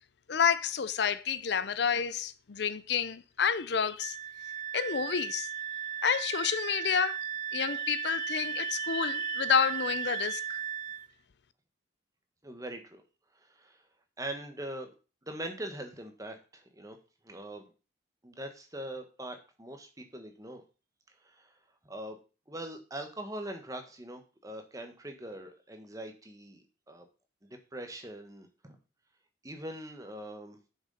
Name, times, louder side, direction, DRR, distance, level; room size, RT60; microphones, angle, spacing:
voice 1, 0.3-4.2 4.7-5.5 6.0-7.2 7.5-10.6, left 7 dB, 60° left, 0.5 m, -29 dB
Wind instrument woodwind instrument, 4.0-11.1, right 9 dB, 40° right, 0.4 m, -36 dB
voice 2, 12.4-13.0 13.3-13.8 14.2-14.9 15.3-17.0 17.2-17.7 18.2-20.6 21.2-21.5 21.8-22.2 22.5-27.0 27.4-28.8 29.4-30.6, right 1 dB, 20° right, 1.4 m, -42 dB
7.4 x 6.7 x 5.5 m
head